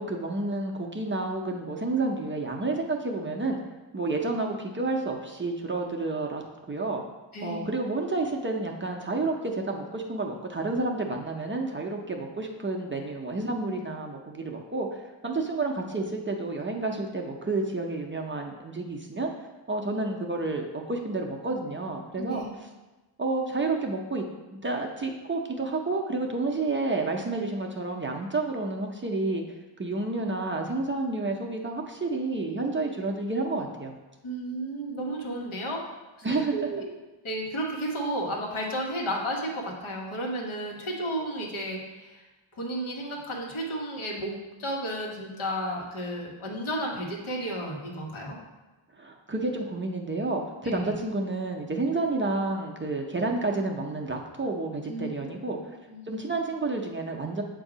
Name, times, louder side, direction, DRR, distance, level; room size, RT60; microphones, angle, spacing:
voice 1, 0.0-3.6 3.9-6.4 6.7-7.0 7.4-19.3 19.7-22.4 23.2-24.2 24.5-29.4 29.8-33.9 36.2-36.6 49.0-55.8 56.1-57.4, right 3 dB, 25° right, 0 dB, 0.5 m, -30 dB
voice 2, 7.3-7.7 22.2-22.4 34.2-35.9 36.3-36.9 37.2-42.2 42.5-44.3 44.6-48.4 50.6-50.9 54.9-55.1 55.6-56.0, right 1 dB, 75° left, -1 dB, 1.3 m, -33 dB
7.5 x 2.7 x 4.9 m, 1.1 s
wide cardioid pair, 130°, 49 cm